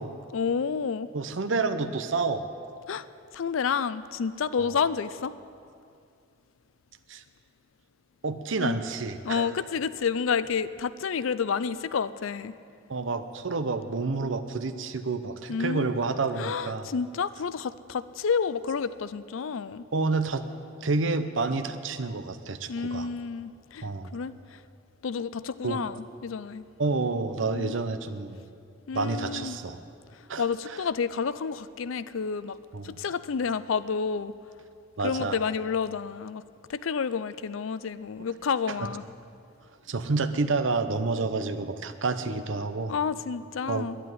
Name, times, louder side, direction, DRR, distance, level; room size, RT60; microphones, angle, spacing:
voice 1, 0.3-1.1 2.9-3.0 3.3-5.3 8.6-8.8 9.2-12.5 15.5-15.9 16.4-19.9 22.7-23.9 24.1-24.6 25.0-26.7 27.5-27.7 28.9-29.6 30.1-32.6 32.8-34.3 35.0-36.4 36.7-39.1 42.9-44.0, left 6 dB, 90° left, 15 dB, 0.5 m, -30 dB
voice 2, 1.1-2.4 4.6-4.7 7.1-7.2 8.2-9.5 12.9-16.9 19.9-20.4 20.8-23.1 23.8-24.1 25.6-25.8 26.8-28.4 28.9-29.8 30.3-30.4 32.7-33.0 35.0-35.4 39.9-42.9 43.7-43.9, right 3 dB, 70° right, 10 dB, 0.8 m, -29 dB
11.5 x 10.0 x 9.5 m, 2.4 s
head